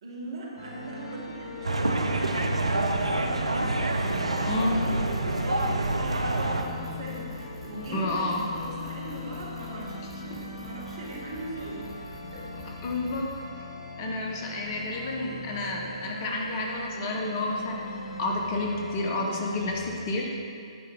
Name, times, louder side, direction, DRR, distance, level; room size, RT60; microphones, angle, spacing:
voice 1, 0.0-12.4, right 1 dB, 55° right, -3 dB, 1.9 m, -40 dB
sound 1, 0.6-19.9, left 2 dB, 55° left, 1.7 m, -40 dB
sound 2, 1.6-6.6, right 2 dB, 80° right, 0.6 m, -27 dB
sound 3, 3.9-13.4, right 1 dB, 5° right, 1.7 m, -48 dB
voice 2, 7.9-8.5 12.8-13.3 13.6-13.7 14.0-20.3, left 2 dB, 30° left, 0 dB, 1.0 m, -30 dB
10.0 x 4.3 x 5.2 m, 2.3 s
figure-of-eight pair, 125°, 3 cm